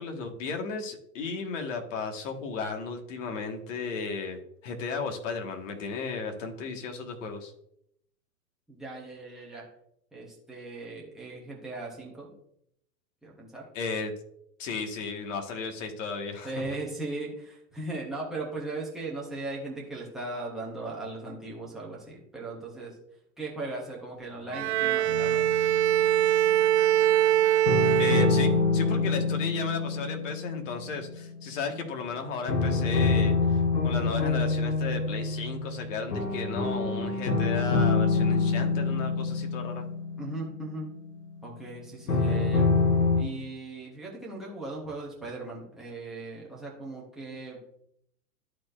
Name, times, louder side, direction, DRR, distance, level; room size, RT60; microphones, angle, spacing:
voice 1, 0.0-7.5 13.7-14.1 14.6-16.6 28.0-39.8, left 4 dB, 50° left, 4 dB, 1.6 m, -35 dB
voice 2, 8.7-9.7 10.1-12.3 13.2-13.6 16.4-22.9 23.4-25.5 29.0-29.2 40.2-40.9 41.4-42.7 43.2-47.6, right 2 dB, ahead, -5 dB, 0.4 m, -38 dB
Bowed string instrument, 24.5-28.9, right 12 dB, 45° right, 0.6 m, -23 dB
sound 1, 25.1-26.3 27.7-31.7 32.5-41.3 42.1-43.2, left 4 dB, 80° left, 1.8 m, -26 dB
12.5 x 4.4 x 2.5 m, 0.73 s
hypercardioid pair, 135°, 48 cm